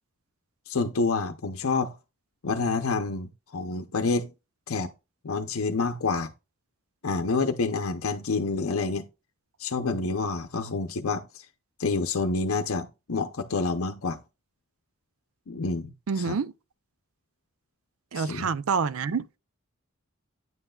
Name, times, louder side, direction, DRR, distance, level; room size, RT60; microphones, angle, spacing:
voice 1, 0.7-2.0 2.4-4.3 4.7-4.9 5.2-6.3 7.0-9.1 9.6-11.4 11.8-14.2 15.5-15.9 16.2-16.4 18.1-18.5, left 4 dB, 75° left, 0.7 m, -28 dB
voice 2, 16.1-16.5 18.1-19.2, right 5 dB, 75° right, 0.5 m, -27 dB
9.5 x 7.8 x 2.3 m
head